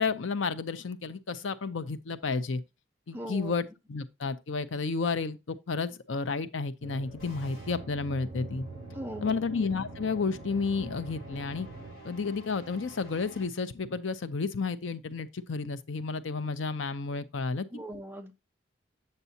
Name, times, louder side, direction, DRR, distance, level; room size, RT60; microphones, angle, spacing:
voice 1, 0.0-2.6 3.1-8.7 9.2-11.7 12.0-17.7, left 4 dB, 75° left, 0.6 m, -31 dB
voice 2, 3.1-3.5 8.9-9.4 17.7-18.3, right 1 dB, 10° right, 0.6 m, -39 dB
sound 1, 6.8-11.9, right 2 dB, 30° right, 2.9 m, -44 dB
sound 2, 7.2-13.4, right 1 dB, 45° left, 3.8 m, -50 dB
8.1 x 6.6 x 2.7 m
head